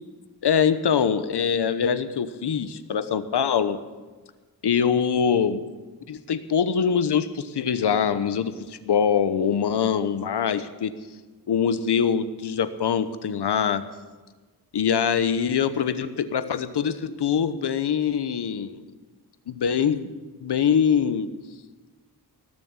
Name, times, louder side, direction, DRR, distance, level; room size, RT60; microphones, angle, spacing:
voice 1, 0.4-3.8 4.6-5.6 6.1-10.9 11.5-13.8 14.7-18.8 19.5-20.1 20.4-21.3, left 7 dB, 80° left, 12 dB, 1.0 m, -23 dB
18.5 x 7.3 x 8.8 m, 1.3 s
wide cardioid pair, 125°, 39 cm